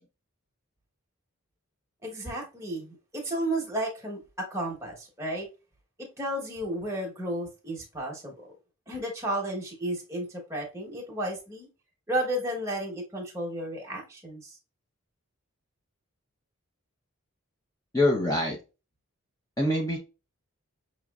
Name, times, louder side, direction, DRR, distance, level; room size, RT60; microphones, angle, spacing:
voice 1, 2.0-5.5 6.0-8.5 8.9-11.7 12.1-14.6, right 1 dB, 15° right, 1.1 m, -33 dB
voice 2, 17.9-18.6 19.6-20.0, left 1 dB, 15° left, 0.6 m, -24 dB
6.0 x 3.0 x 2.3 m
head